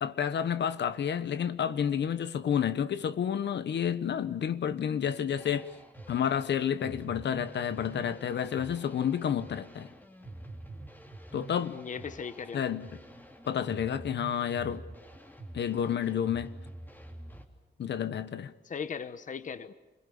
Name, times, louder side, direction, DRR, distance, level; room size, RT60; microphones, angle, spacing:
voice 1, 0.0-5.8 6.1-9.9 11.3-11.8 12.5-12.9 13.5-14.8 15.5-16.5 17.8-18.5, left 8 dB, 70° left, 1.2 m, -30 dB
sound 1, 5.4-17.4, right 1 dB, 10° left, 3.0 m, -47 dB
voice 2, 11.7-12.6 18.6-19.7, left 6 dB, 45° left, 1.0 m, -38 dB
29.0 x 22.0 x 7.1 m
wide cardioid pair, 165°, 18 cm